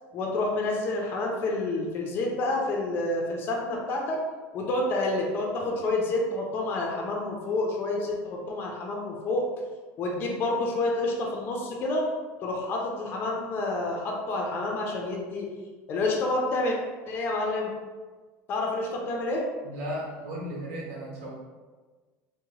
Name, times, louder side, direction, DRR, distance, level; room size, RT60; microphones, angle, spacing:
voice 1, 0.1-4.2 4.5-9.4 10.0-12.1 12.4-15.5 15.9-16.8 17.1-17.7 18.5-19.4, left 2 dB, 35° left, 0 dB, 0.4 m, -28 dB
voice 2, 19.6-21.3, equal, 85° right, -4 dB, 1.0 m, -35 dB
2.8 x 2.0 x 2.9 m, 1.4 s
cardioid pair, 155°, 6 cm